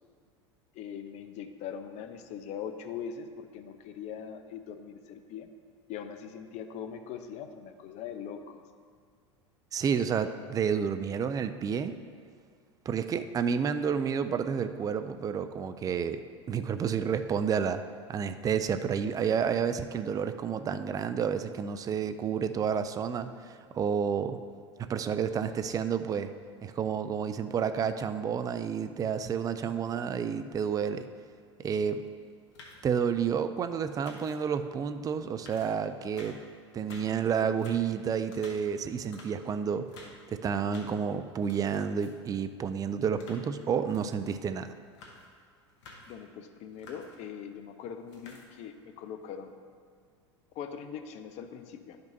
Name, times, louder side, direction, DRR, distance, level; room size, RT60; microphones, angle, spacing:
voice 1, 0.7-5.5 5.9-8.6 46.1-49.5 50.5-52.0, left 7 dB, 50° left, 8 dB, 0.7 m, -41 dB
voice 2, 9.7-11.9 12.9-16.2 16.5-17.8 18.1-24.4 24.8-26.3 26.6-31.1 31.6-32.0 32.8-36.4 36.7-39.9 40.3-44.7, right 7 dB, 25° right, 10 dB, 0.4 m, -30 dB
sound 1, 31.7-31.9 32.3-32.9 34.0-34.5 35.0-35.1 35.4-36.5 36.7-37.2 37.5-40.3 40.6-41.0 41.3-42.3 42.6-44.4 44.8-45.3 45.7-46.2 46.6-47.3 47.9-48.7 49.2-49.5, left 3 dB, 75° left, 1.2 m, -52 dB
11.5 x 5.2 x 2.7 m, 2.1 s
hypercardioid pair, 85°, 15 cm